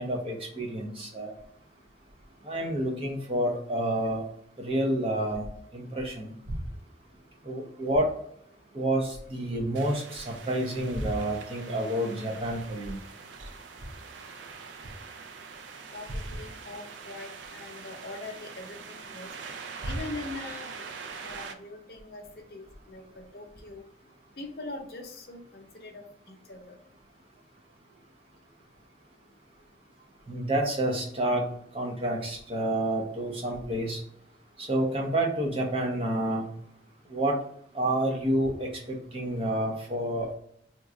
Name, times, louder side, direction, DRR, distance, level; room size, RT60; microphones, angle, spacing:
voice 1, 0.0-1.3 2.4-4.3 4.6-5.5 5.7-6.6 7.4-8.1 8.7-13.0 30.3-31.5 31.7-34.0 34.6-36.5 37.1-37.4 37.7-40.3, right 1 dB, 30° right, -1 dB, 0.7 m, -29 dB
sound 1, 9.7-21.5, right 5 dB, 85° right, 0.4 m, -44 dB
voice 2, 15.9-19.3 19.8-20.9 21.2-22.2 22.5-23.8 24.4-26.7, left 2 dB, 55° left, 2 dB, 0.7 m, -42 dB
3.0 x 2.4 x 3.7 m, 0.66 s
head